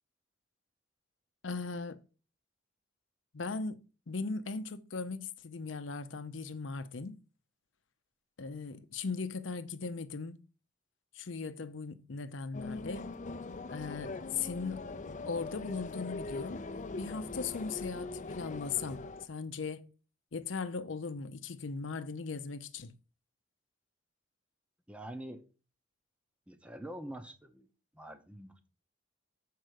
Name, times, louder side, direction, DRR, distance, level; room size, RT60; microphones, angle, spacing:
voice 1, 1.4-2.0 3.3-3.8 4.1-7.2 8.4-10.4 11.1-13.1 13.7-14.8 15.3-16.6 17.0-19.0 19.3-19.9 20.3-22.9, left 4 dB, 90° left, 0.7 m, -38 dB
sound 1, 12.5-19.3, left 3 dB, 40° left, 0.6 m, -41 dB
voice 2, 24.9-25.4 26.5-27.7 27.9-28.7, right 1 dB, 5° right, 0.8 m, -45 dB
6.6 x 4.7 x 6.4 m
head